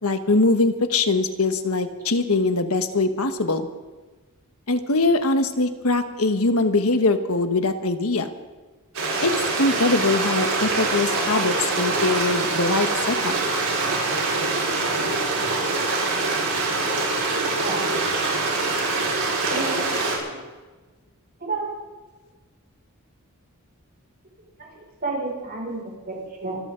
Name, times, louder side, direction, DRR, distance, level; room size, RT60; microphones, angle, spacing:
voice 1, 0.0-3.7 4.7-8.3 9.2-9.3 9.6-13.3, left 3 dB, 80° left, 8 dB, 1.4 m, -22 dB
Stream, 8.9-20.2, right 3 dB, 75° right, 5.2 m, -24 dB
voice 2, 17.5-18.0 19.5-20.4 21.4-21.7 24.6-26.6, right 3 dB, 45° right, -2 dB, 6.0 m, -31 dB
25.5 x 13.5 x 3.9 m, 1.3 s
head